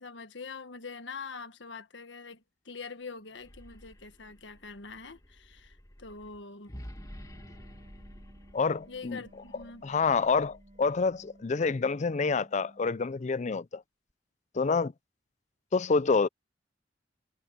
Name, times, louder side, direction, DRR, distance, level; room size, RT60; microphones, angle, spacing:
voice 1, 0.0-6.8 8.9-9.9, left 4 dB, 80° left, 1.5 m, -44 dB
sound 1, 3.3-11.4, equal, 20° left, 2.4 m, -51 dB
Wind instrument woodwind instrument, 6.9-13.4, right 1 dB, 35° right, 2.6 m, -58 dB
voice 2, 8.5-9.2 9.8-13.8 14.5-14.9 15.7-16.3, left 4 dB, 40° left, 0.5 m, -27 dB
head